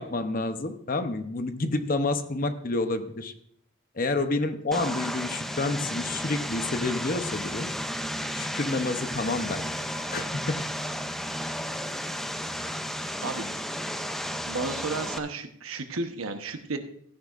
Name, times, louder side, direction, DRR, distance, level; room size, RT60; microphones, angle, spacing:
voice 1, 0.0-3.3 4.0-7.7 8.3-9.7 10.1-10.6, left 2 dB, 40° left, 9 dB, 0.8 m, -29 dB
Vehicle, 4.7-15.2, equal, ahead, 0.5 m, -33 dB
voice 2, 14.5-16.8, right 3 dB, 90° right, 7 dB, 1.0 m, -33 dB
15.0 x 10.0 x 2.5 m, 0.68 s
head